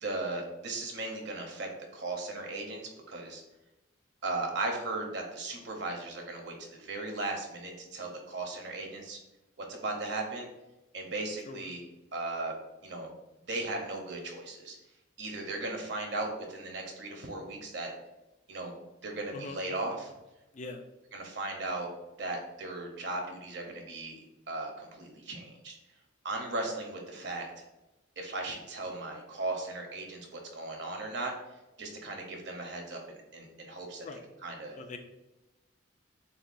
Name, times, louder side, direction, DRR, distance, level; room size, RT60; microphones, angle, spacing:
voice 1, 0.0-2.8 3.1-3.4 4.2-9.2 9.6-10.5 10.9-11.8 12.1-12.5 12.8-13.1 13.5-14.7 15.2-17.9 18.5-18.7 19.0-20.1 21.1-21.9 22.2-24.2 24.5-25.7 26.2-27.5 28.2-31.3 31.8-34.1 34.4-34.8, right 2 dB, 55° right, 2 dB, 0.8 m, -37 dB
voice 2, 11.5-11.7 19.3-19.6 20.5-20.8 34.0-34.2 34.8-35.0, left 3 dB, 35° left, 5 dB, 0.4 m, -42 dB
6.8 x 2.3 x 2.5 m, 0.99 s
head